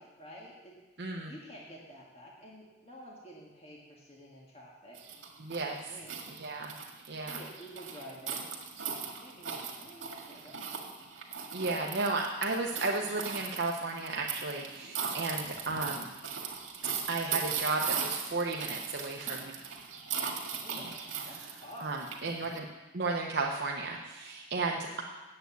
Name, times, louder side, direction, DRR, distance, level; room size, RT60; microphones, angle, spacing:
voice 1, 0.0-5.0 5.5-6.1 7.2-8.5 9.2-10.9 11.7-11.8 20.6-22.0 24.7-25.0, equal, 30° left, -3 dB, 1.7 m, -50 dB
voice 2, 1.0-1.3 5.4-5.8 6.3-6.7 7.1-7.4 11.5-16.1 17.1-19.5 20.7-20.9 21.8-22.7 22.9-25.0, right 3 dB, 55° right, 0 dB, 0.8 m, -34 dB
sound 1, 4.9-22.6, right 7 dB, 80° right, 1.8 m, -39 dB
8.8 x 8.0 x 8.1 m, 1.2 s
head